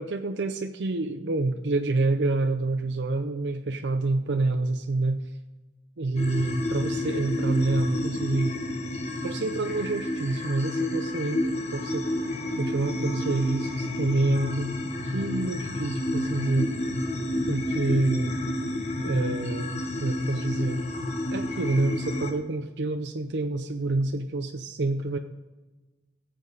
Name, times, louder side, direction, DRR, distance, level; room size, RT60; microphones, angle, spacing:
voice 1, 0.0-5.2 6.0-8.6 9.2-12.0 12.6-14.7 15.0-16.7 17.5-18.3 19.0-19.7 20.0-20.8 21.3-25.2, right 2 dB, 80° right, 5 dB, 0.7 m, -27 dB
sound 1, 6.2-22.3, left 1 dB, 40° left, 1.2 m, -30 dB
18.0 x 7.7 x 4.0 m, 1.2 s
head